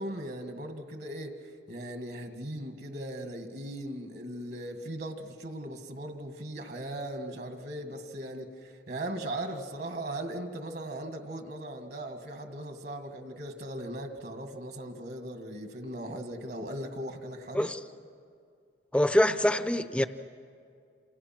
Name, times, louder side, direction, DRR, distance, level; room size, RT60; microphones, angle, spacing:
voice 1, 0.0-17.7, right 1 dB, 55° right, 1.9 m, -38 dB
voice 2, 18.9-20.1, left 1 dB, 5° left, 0.7 m, -24 dB
28.5 x 28.0 x 6.0 m
head